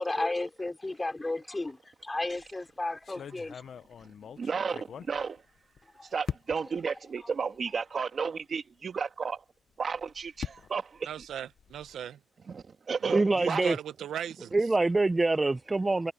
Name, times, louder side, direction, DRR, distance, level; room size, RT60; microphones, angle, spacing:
voice 1, 0.0-3.6 5.9-6.1 7.2-7.3, left 2 dB, 15° left, 4.3 m, -33 dB
sound 1, 2.2-2.5 3.0-5.8 6.3-6.8 7.5-7.6 8.0-8.1 9.7-12.0, left 8 dB, 60° left, 0.8 m, -42 dB
voice 2, 4.4-5.4 6.1-9.4 9.8-11.1 12.5-13.6, right 5 dB, 45° right, 1.6 m, -33 dB
voice 3, 11.1-12.2 13.0-14.5, right 9 dB, 85° right, 0.8 m, -38 dB
voice 4, 13.1-13.8 14.5-16.1, right 2 dB, 20° right, 0.6 m, -25 dB
wide cardioid pair, 125°, 0 cm